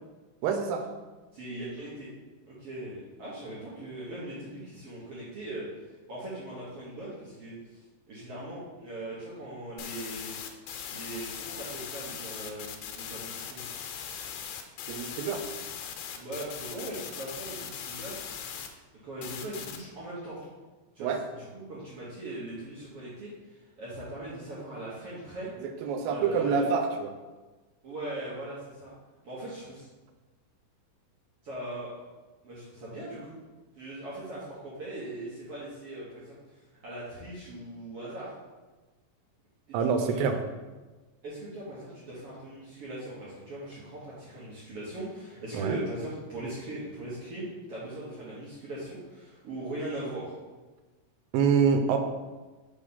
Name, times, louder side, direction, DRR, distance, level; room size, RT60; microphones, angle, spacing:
voice 1, 0.4-0.9 14.9-15.4 21.0-21.2 25.6-27.1 39.7-40.4 45.5-45.8 51.3-52.0, right 6 dB, 90° right, 6 dB, 2.4 m, -26 dB
voice 2, 1.3-2.1 2.5-5.7 6.1-10.4 10.9-13.7 16.1-18.2 19.0-20.4 21.0-25.5 26.1-26.7 27.8-28.9 29.2-29.9 31.4-31.9 32.4-33.4 33.8-38.3 39.7-40.3 41.2-50.3, right 1 dB, 60° right, -8 dB, 1.7 m, -40 dB
sound 1, 9.8-18.7 19.2-19.8, left 8 dB, 85° left, 2.4 m, -39 dB
5.4 x 3.3 x 5.4 m, 1.2 s
omnidirectional pair, 4.0 m